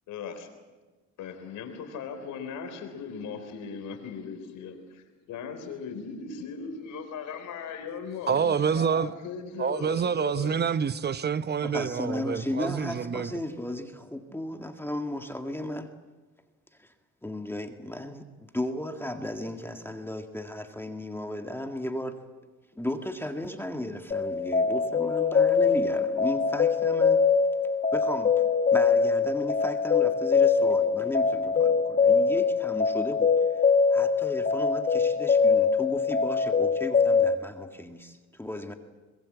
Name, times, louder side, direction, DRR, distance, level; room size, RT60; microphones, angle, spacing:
voice 1, 0.1-0.5 1.2-10.5, left 6 dB, 85° left, 4.0 m, -38 dB
voice 2, 8.3-9.1 9.6-13.3, right 7 dB, 35° right, 0.9 m, -27 dB
voice 3, 11.6-15.9 16.8-16.9 17.2-18.3 18.5-22.2 22.8-27.2 27.9-28.5 28.7-33.6 33.9-38.7, left 1 dB, 10° left, 1.9 m, -35 dB
sound 1, 24.1-37.3, left 5 dB, 30° left, 1.3 m, -23 dB
24.0 x 21.0 x 7.7 m
cardioid pair, 90°, 30 cm